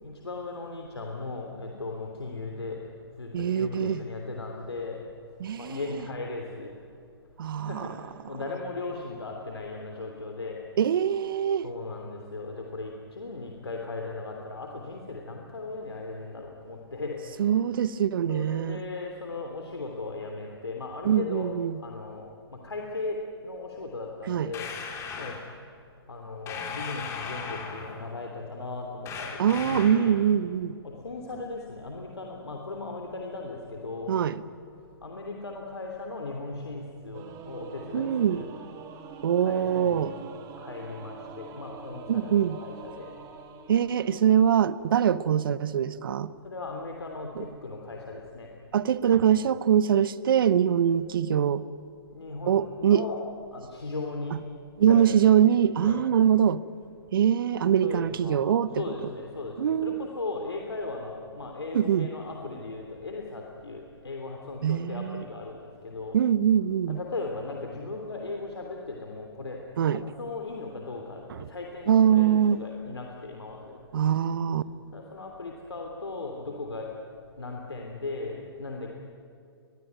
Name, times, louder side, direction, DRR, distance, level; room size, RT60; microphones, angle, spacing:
voice 1, 0.0-2.8 3.2-5.0 5.6-6.7 7.6-7.9 8.3-10.6 11.6-17.2 18.3-21.5 21.8-22.2 22.5-23.2 23.4-24.7 25.2-25.4 26.1-29.4 29.6-30.2 30.8-34.1 35.0-38.5 39.4-40.1 40.5-43.1 46.4-48.5 52.1-53.2 53.5-54.4 54.8-55.3 55.8-56.0 57.6-58.4 58.7-66.2 66.9-69.6 69.9-71.2 71.5-73.8 74.9-76.9 77.4-78.9, left 3 dB, 80° left, 3.2 m, -37 dB
voice 2, 3.3-4.0 5.4-5.8 7.4-7.9 10.8-11.7 17.4-18.8 21.0-21.8 24.3-24.5 29.4-30.7 34.1-34.4 37.9-38.4 39.2-40.1 42.1-42.6 43.7-46.3 47.4-47.5 48.7-51.6 52.5-53.0 54.8-56.6 57.1-58.8 59.6-60.1 61.7-62.1 64.6-65.2 66.1-67.0 69.8-70.0 71.9-72.6 73.9-74.6, right 9 dB, 60° right, 1.0 m, -23 dB
sound 1, 24.5-25.4 26.5-28.0 29.0-30.1, left 5 dB, 20° left, 3.4 m, -37 dB
Singing / Musical instrument, 37.1-44.9, right 6 dB, 25° right, 2.4 m, -45 dB
23.5 x 21.5 x 9.4 m
figure-of-eight pair, 125°, 13 cm